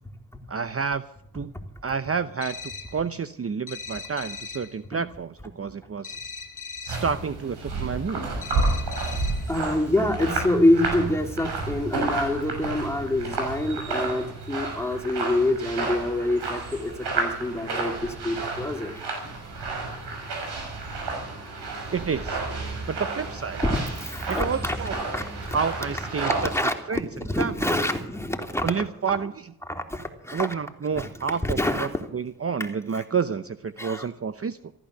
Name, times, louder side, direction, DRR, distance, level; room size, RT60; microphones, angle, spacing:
voice 1, 0.5-1.0 1.3-1.5 1.8-2.6 2.9-6.1 6.8-8.3 21.9-22.4 22.9-23.6 24.3-25.0 25.5-26.5 26.9-27.1 27.4-27.7 28.6-29.3 30.3-34.7, right 6 dB, 35° right, 11 dB, 0.8 m, -29 dB
sound 1, 2.4-3.0 3.7-4.8 6.0-7.2 8.4-9.5, left 4 dB, 50° left, 2.3 m, -39 dB
sound 2, 6.9-26.6, right 3 dB, 85° right, 6.1 m, -31 dB
voice 2, 9.5-19.0 23.6-24.8 25.1-25.6 26.2-28.7 29.1-29.2 29.7-30.5 31.0-31.1 31.4-31.9 32.9-33.0 33.8-34.1, left 1 dB, 5° left, 3 dB, 3.2 m, -26 dB
15.0 x 12.0 x 6.7 m, 0.76 s
cardioid pair, 55°, 39 cm